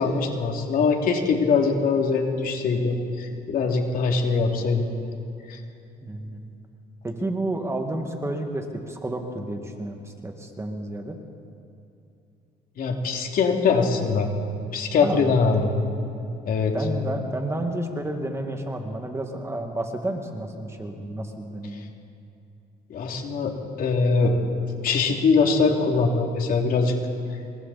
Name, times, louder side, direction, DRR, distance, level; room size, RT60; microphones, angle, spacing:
voice 1, 0.0-5.0 5.5-5.6 12.8-14.3 14.7-15.7 16.5-16.8 21.7-21.8 22.9-24.4 24.8-26.9, left 4 dB, 60° left, 2 dB, 2.9 m, -22 dB
voice 2, 6.0-6.6 7.0-11.2 14.9-15.3 16.7-21.9, right 1 dB, 15° right, 3 dB, 2.0 m, -31 dB
27.0 x 24.0 x 4.3 m, 2.7 s
cardioid pair, 110°, 17 cm